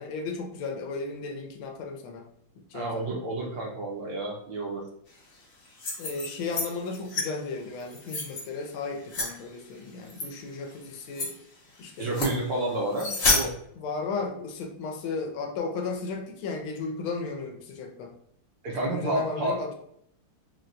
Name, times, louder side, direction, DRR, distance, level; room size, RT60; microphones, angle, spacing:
voice 1, 0.0-2.3 2.6-3.2 6.0-11.3 11.8-12.5 13.8-18.1 18.7-19.7, left 4 dB, 80° left, 2 dB, 1.4 m, -35 dB
voice 2, 2.7-4.8 12.0-13.5 18.6-19.6, right 1 dB, 70° right, -3 dB, 1.1 m, -30 dB
sound 1, 5.7-6.7 6.9-7.3 7.8-8.4 9.1-9.3 10.1-10.3 10.7-10.8 11.1-11.3 12.0-12.4 12.9-13.4, left 3 dB, 40° left, 1.0 m, -28 dB
4.2 x 2.1 x 2.5 m, 0.72 s
omnidirectional pair, 2.3 m